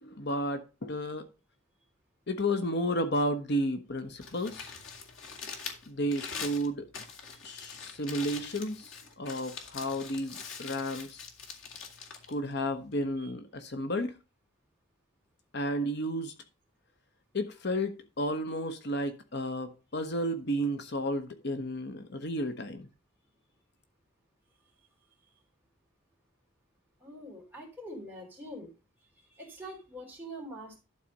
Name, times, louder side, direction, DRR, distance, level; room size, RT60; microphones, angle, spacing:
voice 1, 0.0-1.2 2.3-4.7 5.9-6.9 7.4-11.3 12.3-14.1 15.5-16.3 17.3-22.9, equal, 60° left, 1.0 m, -32 dB
Crumpling crinkling, 4.0-13.2, left 5 dB, 90° left, 2.1 m, -44 dB
voice 2, 27.0-28.7 29.3-30.8, equal, 10° right, 3.4 m, -44 dB
11.5 x 4.2 x 5.2 m
head